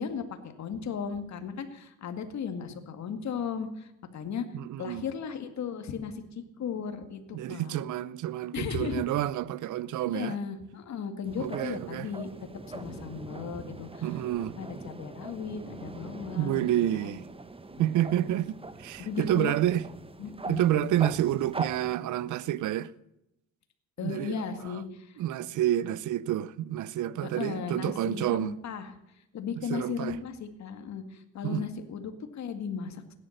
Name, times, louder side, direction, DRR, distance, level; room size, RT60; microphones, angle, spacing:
voice 1, 0.0-4.5 4.8-7.8 8.5-9.0 10.1-12.3 12.7-14.1 14.6-16.7 17.0-17.2 17.7-18.3 19.0-19.5 20.2-21.0 24.0-25.2 27.2-28.9 29.3-33.1, left 6 dB, 65° left, 2.1 m, -36 dB
voice 2, 4.5-5.0 7.3-10.3 11.4-12.1 14.0-14.5 16.4-17.2 17.8-19.9 20.5-22.9 24.0-24.8 25.2-28.6 29.7-30.2 31.4-31.7, right 12 dB, 80° right, 0.7 m, -29 dB
sound 1, 11.2-22.0, right 3 dB, 20° right, 1.3 m, -42 dB
16.5 x 11.0 x 6.6 m
cardioid pair, 90°, 30 cm